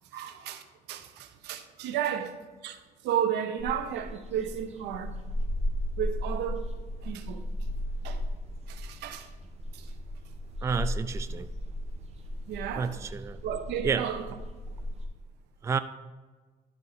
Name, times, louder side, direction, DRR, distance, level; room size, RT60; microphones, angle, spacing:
voice 1, 0.1-5.1 6.0-6.6 7.0-7.4 8.0-8.2 8.7-9.3 9.7-9.9 12.5-12.9 13.4-14.2, right 9 dB, 85° right, 0.8 m, -33 dB
sound 1, 3.6-15.1, left 1 dB, 40° right, 1.3 m, -35 dB
voice 2, 10.6-11.5 12.8-13.4 13.8-14.1 15.6-15.8, right 6 dB, 15° right, 0.3 m, -30 dB
11.5 x 4.4 x 3.9 m
cardioid pair, 110°, 17 cm